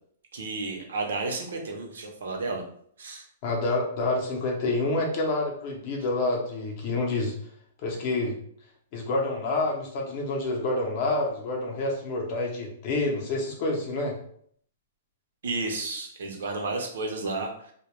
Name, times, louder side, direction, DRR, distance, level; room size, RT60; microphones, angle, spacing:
voice 1, 0.3-2.6 3.0-3.2 15.4-17.7, right 3 dB, 80° right, 2 dB, 0.6 m, -32 dB
voice 2, 3.4-7.3 7.8-8.4 8.9-14.2, left 2 dB, 30° left, -1 dB, 0.6 m, -28 dB
2.2 x 2.1 x 2.9 m, 0.63 s
hypercardioid pair, 175°, 0 cm